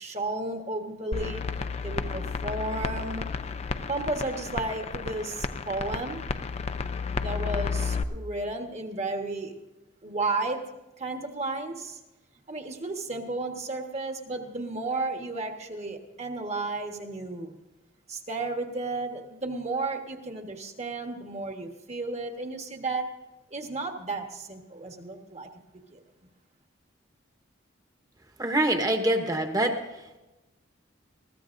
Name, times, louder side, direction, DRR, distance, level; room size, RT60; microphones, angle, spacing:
voice 1, 0.0-3.3 3.9-6.2 7.2-9.5 10.0-10.6 11.0-12.0 12.5-17.5 18.1-23.1 23.5-25.5 25.9-26.0, right 2 dB, 35° right, 4 dB, 1.3 m, -33 dB
sound 1, 1.1-8.0, left 4 dB, 35° left, 0.5 m, -32 dB
voice 2, 28.4-29.8, right 1 dB, 20° right, 5 dB, 1.1 m, -24 dB
21.0 x 14.5 x 2.6 m, 1.1 s
head